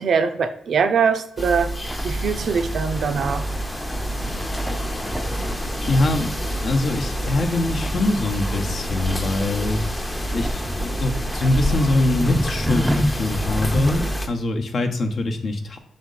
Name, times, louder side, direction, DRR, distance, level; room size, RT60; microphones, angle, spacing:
voice 1, 0.0-1.7 2.0-3.5, right 6 dB, 65° right, 9 dB, 0.5 m, -22 dB
sound 1, 1.4-14.3, equal, 25° left, 0.8 m, -28 dB
sound 2, 1.9-14.2, equal, 10° right, 0.4 m, -31 dB
voice 2, 5.9-6.3 6.6-9.9 10.3-15.8, left 2 dB, 60° left, 4 dB, 0.8 m, -23 dB
6.4 x 4.3 x 3.9 m, 0.75 s
cardioid pair, 100°, 0 cm